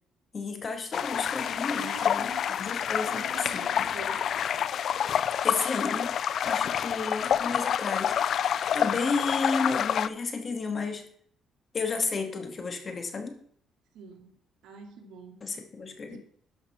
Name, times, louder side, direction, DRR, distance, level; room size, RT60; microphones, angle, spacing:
voice 1, 0.3-2.3 2.6-3.2 3.5-3.9 5.4-6.1 6.4-8.2 8.7-11.0 11.7-13.4 15.4-16.2, left 4 dB, 35° left, 6 dB, 2.0 m, -32 dB
sound 1, 0.9-10.1, left 9 dB, 55° left, 0.4 m, -28 dB
voice 2, 1.7-4.3 13.9-14.4 14.6-15.4 16.1-16.2, right 5 dB, 75° right, 4 dB, 2.3 m, -45 dB
12.0 x 5.9 x 5.7 m, 0.62 s
cardioid pair, 115°, 0 cm